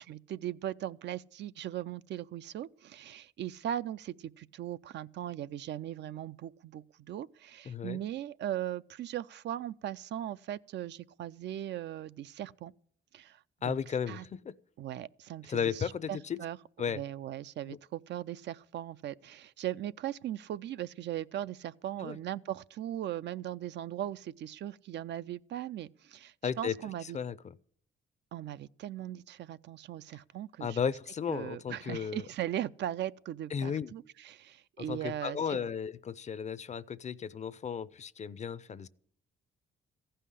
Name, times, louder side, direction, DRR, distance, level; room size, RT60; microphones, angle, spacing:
voice 1, 0.0-12.7 13.1-13.8 14.1-14.2 14.8-16.6 16.9-27.2 28.3-30.9 31.3-35.6, right 12 dB, 60° right, 0.4 m, -39 dB
voice 2, 7.7-8.0 13.6-14.5 15.5-16.4 16.8-17.0 17.7-17.8 22.0-22.2 26.4-26.8 27.0-27.5 30.6-32.2 33.5-33.9 34.8-38.9, left 7 dB, 35° left, 0.5 m, -34 dB
15.0 x 5.6 x 9.9 m
cardioid pair, 90°, 20 cm